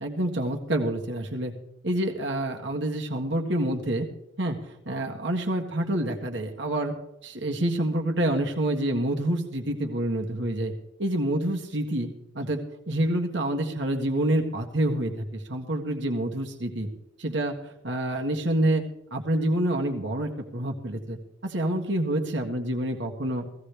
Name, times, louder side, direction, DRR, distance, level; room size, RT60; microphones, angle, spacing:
voice 1, 0.0-1.5 1.8-4.1 4.4-4.6 4.8-6.9 7.2-10.7 11.0-12.1 12.3-16.9 17.2-17.6 17.8-18.8 19.1-23.5, right 1 dB, 70° right, 2 dB, 1.7 m, -27 dB
16.5 x 15.0 x 3.5 m, 0.82 s
head